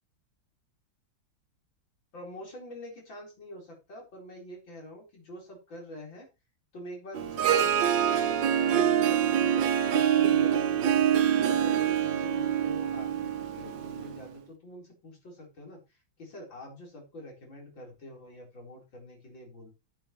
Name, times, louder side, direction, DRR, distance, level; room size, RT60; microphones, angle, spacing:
voice 1, 2.1-6.3 6.7-10.9 11.4-19.7, left 1 dB, 70° left, -1 dB, 4.9 m, -45 dB
Harp, 7.1-14.2, right 9 dB, 65° right, 1.6 m, -25 dB
13.5 x 8.0 x 3.1 m, 0.27 s
omnidirectional pair, 2.2 m